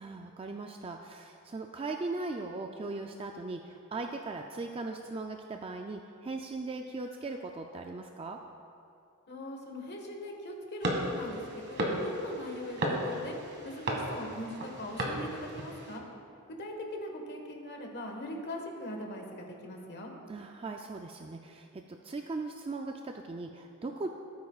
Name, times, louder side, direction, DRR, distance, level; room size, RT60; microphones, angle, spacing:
voice 1, 0.0-8.4 20.3-24.1, right 3 dB, 25° right, 3 dB, 0.4 m, -39 dB
voice 2, 9.3-13.4 13.6-16.0 16.6-20.1, left 1 dB, 50° left, 1 dB, 1.5 m, -41 dB
sound 1, 10.8-16.0, right 1 dB, 55° right, 1.6 m, -35 dB
17.5 x 9.4 x 2.4 m, 2.6 s
head